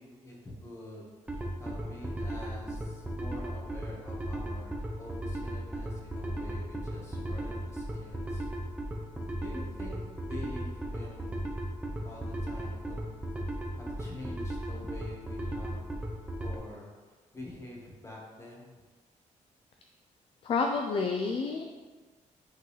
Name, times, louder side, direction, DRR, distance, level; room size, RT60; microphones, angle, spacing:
voice 1, 0.0-8.5 9.4-11.3 12.0-13.1 13.4-15.8 16.4-18.7, left 1 dB, 20° left, -3 dB, 1.4 m, -46 dB
sound 1, 1.3-16.6, right 1 dB, 10° right, 0.8 m, -36 dB
voice 2, 20.4-21.7, left 4 dB, 45° left, 3 dB, 0.4 m, -29 dB
8.0 x 3.9 x 3.2 m, 1.3 s
wide cardioid pair, 145°, 13 cm